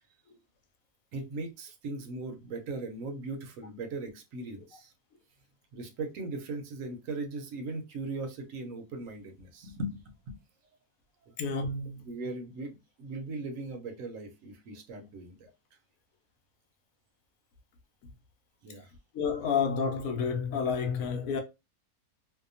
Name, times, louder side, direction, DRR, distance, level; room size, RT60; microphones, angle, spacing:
voice 1, 1.1-4.9 5.7-10.4 11.3-11.4 12.1-15.5 18.6-18.9, right 2 dB, 70° right, 1.0 m, -39 dB
voice 2, 11.4-12.0 19.1-21.4, left 5 dB, 75° left, 1.0 m, -30 dB
2.7 x 2.1 x 2.5 m
omnidirectional pair, 1.5 m